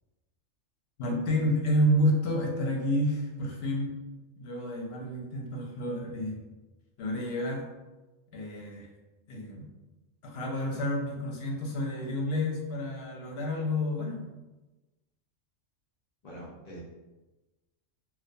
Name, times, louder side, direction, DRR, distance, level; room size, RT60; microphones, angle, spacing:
voice 1, 1.0-3.9 4.4-6.4 7.0-7.6 8.3-8.9 9.3-9.7 10.2-14.2, equal, 65° left, 0 dB, 0.7 m, -29 dB
voice 2, 16.2-16.8, equal, 85° left, -4 dB, 0.3 m, -44 dB
2.4 x 2.1 x 2.6 m, 1.1 s
omnidirectional pair, 1.3 m